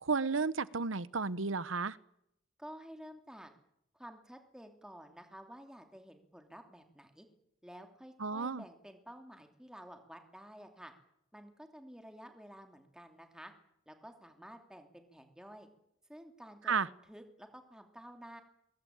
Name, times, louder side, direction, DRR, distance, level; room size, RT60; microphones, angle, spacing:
voice 1, 0.0-2.0 8.2-8.6 16.7-16.9, right 4 dB, 90° right, 18 dB, 1.0 m, -32 dB
voice 2, 2.6-3.5 3.9-7.3 7.6-10.9 11.3-13.5 13.9-15.7 16.1-18.4, equal, 5° right, 5 dB, 2.8 m, -52 dB
24.5 x 22.0 x 8.9 m, 0.77 s
head